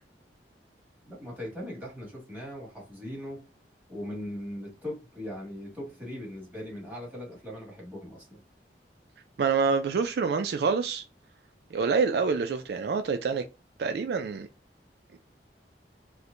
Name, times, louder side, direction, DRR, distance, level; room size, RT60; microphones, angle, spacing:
voice 1, 1.1-3.4 3.9-8.4, left 1 dB, 10° right, 1.7 m, -39 dB
voice 2, 9.4-11.0 11.7-13.4 13.8-14.5 15.1-15.2, right 5 dB, 60° right, 0.3 m, -26 dB
4.4 x 2.1 x 2.5 m
head